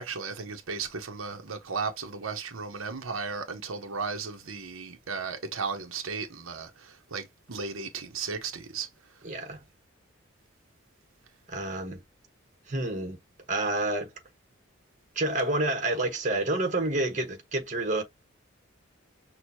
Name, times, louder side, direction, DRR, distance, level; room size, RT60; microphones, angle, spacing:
voice 1, 0.0-6.7 7.1-7.2 7.5-8.9, right 5 dB, 85° right, 0.9 m, -35 dB
voice 2, 9.2-9.6 11.5-12.0 12.7-13.2 13.5-14.1 15.1-18.0, right 2 dB, 35° right, 1.1 m, -28 dB
6.3 x 2.3 x 2.7 m
head